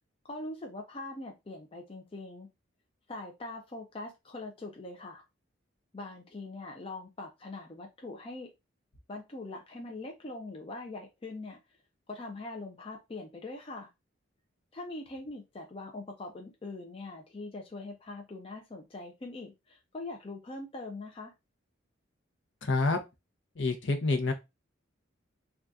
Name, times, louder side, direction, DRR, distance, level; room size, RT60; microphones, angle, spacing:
voice 1, 0.3-2.5 3.1-5.2 5.9-8.5 9.1-11.6 12.1-13.9 14.7-21.3, left 2 dB, 30° left, 0.4 m, -42 dB
voice 2, 22.6-23.0 23.6-24.3, left 3 dB, 65° left, 0.7 m, -27 dB
2.6 x 2.3 x 3.4 m
head